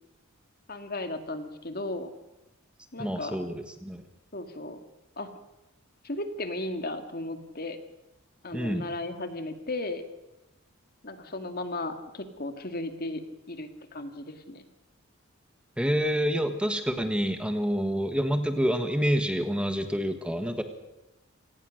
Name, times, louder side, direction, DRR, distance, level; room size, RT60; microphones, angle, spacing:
voice 1, 0.7-2.1 2.9-3.4 4.3-4.8 5.2-5.3 6.0-7.8 8.4-10.0 11.0-13.2 13.5-14.6, left 2 dB, 45° left, 7 dB, 2.2 m, -35 dB
voice 2, 3.0-4.0 8.5-8.9 15.8-20.6, equal, 5° right, 7 dB, 1.4 m, -28 dB
27.0 x 18.5 x 6.5 m, 0.96 s
head